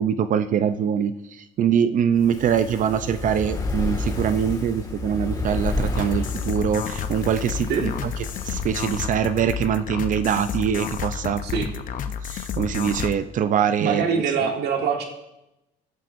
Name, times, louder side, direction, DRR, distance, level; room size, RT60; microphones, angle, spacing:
voice 1, 0.0-8.1 8.4-11.4 12.2-14.0, right 8 dB, 50° right, 11 dB, 0.5 m, -23 dB
Fire, 2.1-9.5 9.8-9.9, left 2 dB, 20° left, 1.9 m, -30 dB
sound 1, 5.9-13.2, left 8 dB, 50° left, 0.7 m, -31 dB
voice 2, 13.8-15.0, right 6 dB, 75° right, 2 dB, 1.7 m, -23 dB
15.5 x 10.5 x 2.6 m, 0.93 s
cardioid pair, 110°, 17 cm